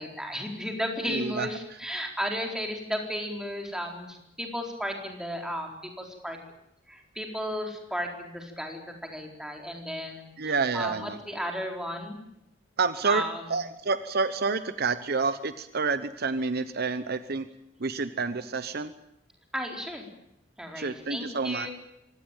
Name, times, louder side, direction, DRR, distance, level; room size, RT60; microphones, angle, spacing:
voice 1, 0.0-6.4 6.9-12.2 13.0-13.4 19.5-20.1 20.6-21.7, equal, 5° right, 2 dB, 4.2 m, -34 dB
voice 2, 1.1-1.5 10.4-11.2 12.8-13.2 13.5-17.5 17.8-18.9 20.8-21.7, right 4 dB, 55° right, 12 dB, 1.0 m, -28 dB
24.5 x 18.0 x 9.1 m, 0.81 s
head